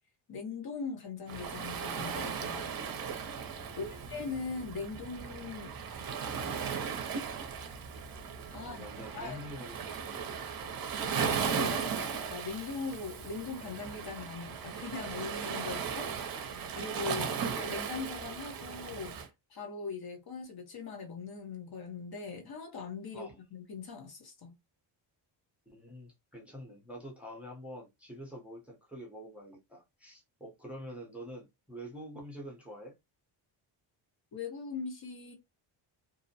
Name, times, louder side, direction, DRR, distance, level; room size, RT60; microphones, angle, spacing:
voice 1, 0.3-2.7 3.8-5.8 8.5-8.8 9.1-9.4 11.1-17.3 17.6-19.2 19.5-24.5 34.3-35.3, left 4 dB, 50° left, 0.9 m, -40 dB
Waves surf, 1.3-19.3, right 6 dB, 50° right, 0.6 m, -37 dB
voice 2, 3.7-4.2 8.6-10.4 17.1-17.4 23.1-23.4 25.7-32.9, equal, 5° right, 0.7 m, -46 dB
2.6 x 2.0 x 2.7 m
cardioid pair, 130°, 48 cm